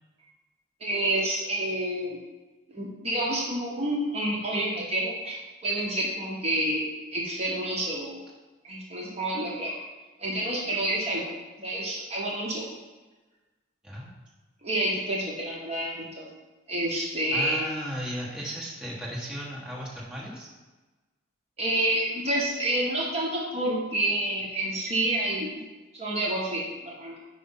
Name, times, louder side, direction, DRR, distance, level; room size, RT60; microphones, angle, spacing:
voice 1, 0.8-2.2 2.7-6.9 7.1-8.2 8.6-9.7 10.2-11.2 11.6-12.6 14.6-16.3 16.7-17.7 21.6-25.6 25.9-27.2, right 1 dB, 30° right, -4 dB, 1.1 m, -28 dB
voice 2, 17.3-20.5, equal, 5° right, -6 dB, 1.3 m, -35 dB
5.0 x 5.0 x 5.6 m, 1.2 s
head